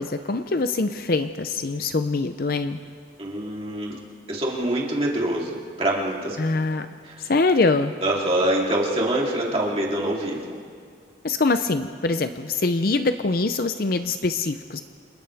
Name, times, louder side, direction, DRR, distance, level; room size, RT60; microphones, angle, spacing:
voice 1, 0.0-2.8 6.4-6.9 7.2-7.9 11.2-14.8, left 3 dB, 50° left, 9 dB, 0.6 m, -23 dB
voice 2, 3.2-4.0 4.3-6.4 7.1-7.2 8.0-10.5, right 1 dB, 30° right, -3 dB, 3.2 m, -25 dB
29.5 x 27.5 x 3.5 m, 2.2 s
head